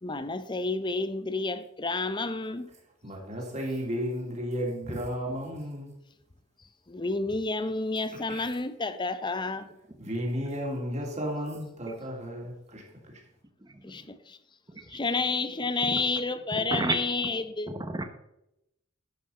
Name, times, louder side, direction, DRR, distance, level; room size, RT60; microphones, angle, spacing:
voice 1, 0.0-2.7 6.9-9.7 13.8-14.4 14.9-17.7, left 3 dB, 25° left, 0.7 m, -30 dB
voice 2, 3.0-5.9 8.3-8.4 10.0-12.8 13.1-13.2, equal, 35° right, 3.1 m, -33 dB
voice 3, 17.7-18.0, right 2 dB, 20° right, 0.8 m, -30 dB
11.5 x 6.0 x 5.4 m
head